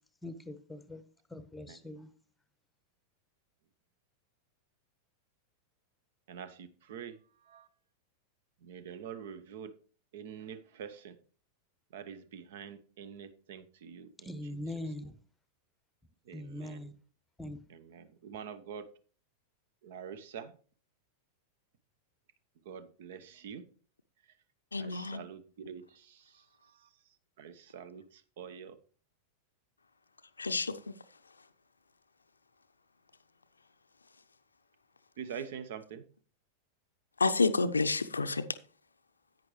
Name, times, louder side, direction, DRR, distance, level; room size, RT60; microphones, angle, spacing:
voice 1, 0.2-1.0 1.3-2.1 14.2-15.1 16.3-16.9 17.4-17.6, left 1 dB, 5° left, 0.9 m, -41 dB
voice 2, 6.3-7.7 8.6-9.7 10.1-11.2 11.9-14.7 15.0-15.1 16.3-17.0 17.7-18.9 19.8-20.5 22.6-23.6 24.8-26.9 27.4-28.8 35.2-36.0, right 7 dB, 55° right, 0.9 m, -46 dB
voice 3, 24.7-25.2 30.4-30.9 37.2-38.4, left 3 dB, 75° left, 0.6 m, -29 dB
10.5 x 9.0 x 3.1 m
figure-of-eight pair, 90°, 0 cm